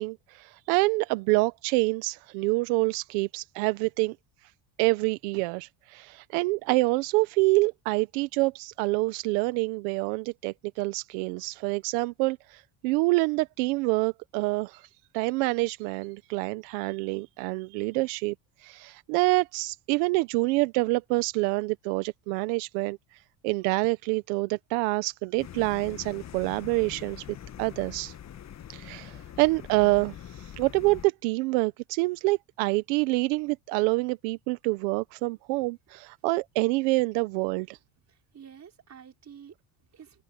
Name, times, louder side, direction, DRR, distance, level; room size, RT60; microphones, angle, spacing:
voice 1, 0.0-4.2 4.8-14.9 15.1-18.3 18.6-23.0 23.4-27.2 27.6-28.1 28.7-37.8, right 23 dB, 90° right, 1.0 m, -27 dB
sound 1, 25.4-31.1, left 10 dB, 35° left, 1.2 m, -44 dB
voice 2, 38.0-40.2, right 8 dB, 35° right, 5.1 m, -50 dB
supercardioid pair, 110°, 47 cm